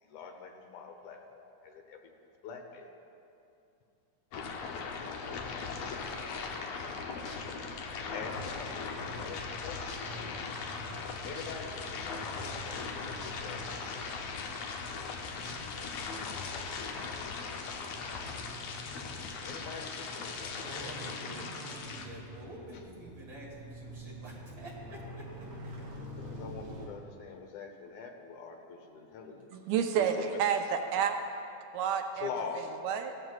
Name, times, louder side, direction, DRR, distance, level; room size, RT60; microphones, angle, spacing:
voice 1, 0.0-2.0 2.4-2.9 8.1-8.7 9.1-10.7 11.2-13.6 19.5-21.0 26.2-29.5 30.0-30.4 32.1-32.7, left 6 dB, 90° left, 3 dB, 2.5 m, -44 dB
sound 1, 4.3-22.1, left 5 dB, 70° left, 1.8 m, -39 dB
voice 2, 6.1-7.5 20.3-25.3, right 1 dB, 40° right, -4 dB, 2.8 m, -49 dB
sound 2, 7.2-7.5 8.4-8.5 9.3-9.4 9.9-10.2 11.3-11.5 13.2-13.3 13.8-13.9 15.4-15.5 16.3-16.4, left 3 dB, 50° left, 1.1 m, -49 dB
sound 3, 7.9-26.9, right 1 dB, 70° right, 3.2 m, -48 dB
voice 3, 29.5-31.2 31.7-32.3 32.8-33.1, right 8 dB, 85° right, 5 dB, 2.0 m, -29 dB
17.0 x 13.0 x 2.4 m, 2.7 s
omnidirectional pair, 3.3 m